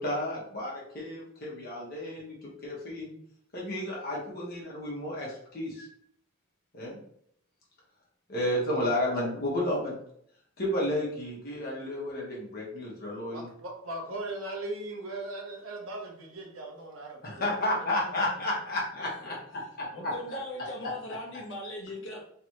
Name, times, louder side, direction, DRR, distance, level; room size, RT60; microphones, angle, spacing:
voice 1, 0.0-3.1 3.5-5.9 6.7-7.0 8.3-10.0 10.6-13.5 17.2-20.1, left 1 dB, 45° left, -4 dB, 1.4 m, -32 dB
voice 2, 13.3-18.1 20.0-20.1, right 2 dB, 75° right, 0 dB, 0.9 m, -39 dB
voice 3, 19.9-22.2, left 1 dB, 60° left, -1 dB, 1.1 m, -39 dB
3.4 x 3.0 x 3.0 m, 0.68 s
head